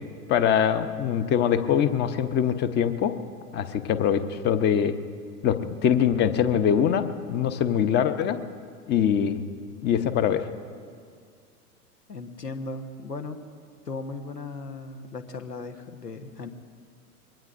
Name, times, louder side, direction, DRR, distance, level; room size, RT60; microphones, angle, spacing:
voice 1, 0.3-3.1 3.5-4.9 5.4-8.4 8.9-9.5 9.8-10.5, left 8 dB, 20° left, 10 dB, 0.8 m, -23 dB
voice 2, 12.1-13.4 13.8-16.5, left 3 dB, 90° left, 8 dB, 1.3 m, -37 dB
25.5 x 22.0 x 2.6 m, 2.1 s
figure-of-eight pair, 100°, 47 cm